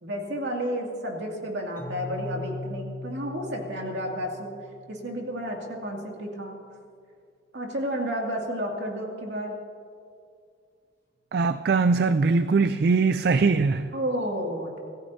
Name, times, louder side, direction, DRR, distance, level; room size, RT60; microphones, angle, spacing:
voice 1, 0.0-4.5 4.9-6.6 7.5-9.6 13.9-14.8, equal, 75° right, 0 dB, 2.4 m, -31 dB
Keyboard (musical), 1.8-5.5, left 3 dB, 15° left, 1.9 m, -40 dB
voice 2, 11.3-13.9, right 4 dB, 55° right, 11 dB, 0.4 m, -21 dB
26.0 x 14.5 x 2.7 m, 2.3 s
head